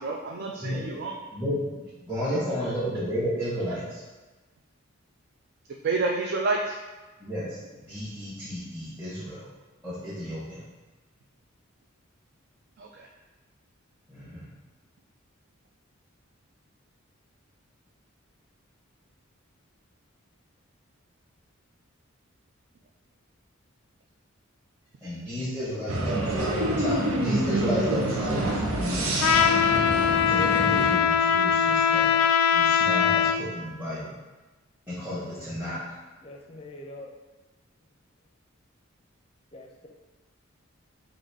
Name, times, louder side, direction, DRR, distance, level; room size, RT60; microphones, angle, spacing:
voice 1, 0.0-1.2 5.8-6.8 12.8-13.1 26.5-26.6, right 3 dB, 50° right, -1 dB, 0.3 m, -29 dB
voice 2, 2.0-4.0 7.2-7.6 7.9-9.4 9.8-10.6 14.1-14.4 25.0-29.1 30.3-32.1 32.5-34.1 34.9-35.9, equal, 10° right, -12 dB, 0.9 m, -32 dB
sound 1, 25.9-30.9, right 1 dB, 85° right, 0.8 m, -27 dB
Trumpet, 29.2-33.4, left 8 dB, 90° left, 0.3 m, -21 dB
voice 3, 36.2-37.1 39.5-39.9, left 1 dB, 25° left, 0 dB, 0.5 m, -44 dB
3.9 x 2.6 x 4.7 m, 1.2 s
head